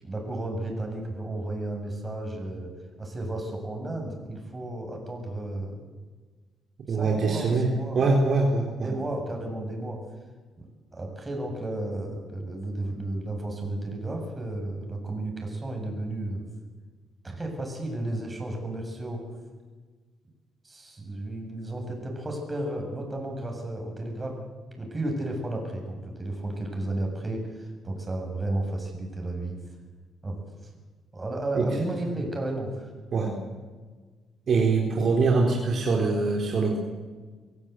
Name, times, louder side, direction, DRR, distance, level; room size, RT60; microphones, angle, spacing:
voice 1, 0.0-2.7 3.0-5.8 6.9-8.0 8.8-10.0 10.6-10.7 10.9-16.4 17.2-19.3 20.6-24.4 24.8-29.6 30.2-30.7 31.1-32.9, right 1 dB, 20° right, 2 dB, 7.3 m, -33 dB
voice 2, 6.9-8.9 31.6-31.7 33.1-33.3 34.5-36.8, right 3 dB, 55° right, 0 dB, 4.0 m, -23 dB
24.5 x 16.0 x 8.2 m, 1.4 s
cardioid pair, 90°, 0 cm